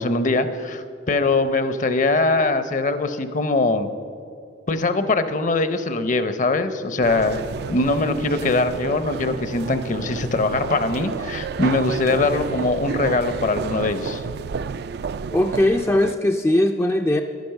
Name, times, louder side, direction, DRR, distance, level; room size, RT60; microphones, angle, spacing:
voice 1, 0.0-3.9 4.7-7.4 7.7-14.2, left 3 dB, 45° left, 11 dB, 0.7 m, -22 dB
sound 1, 7.0-16.1, right 5 dB, 60° right, 0.3 m, -31 dB
voice 2, 15.3-17.2, left 1 dB, 15° left, 4 dB, 0.4 m, -19 dB
11.0 x 10.5 x 6.6 m, 2.4 s
head